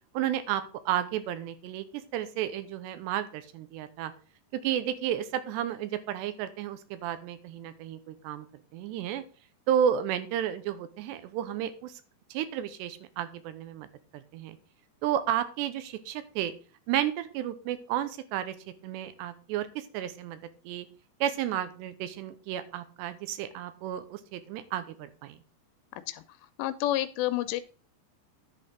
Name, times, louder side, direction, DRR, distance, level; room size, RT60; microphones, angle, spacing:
voice 1, 0.1-4.1 4.5-8.5 8.7-9.2 9.7-12.0 12.3-13.9 14.1-14.6 15.0-16.5 16.9-18.6 18.8-20.4 20.7-20.9 21.2-25.4, right 10 dB, 90° right, 12 dB, 3.1 m, -32 dB
voice 2, 25.9-26.2 26.6-27.6, left 14 dB, 85° left, 12 dB, 2.8 m, -29 dB
10.5 x 4.4 x 6.3 m, 0.38 s
omnidirectional pair, 4.9 m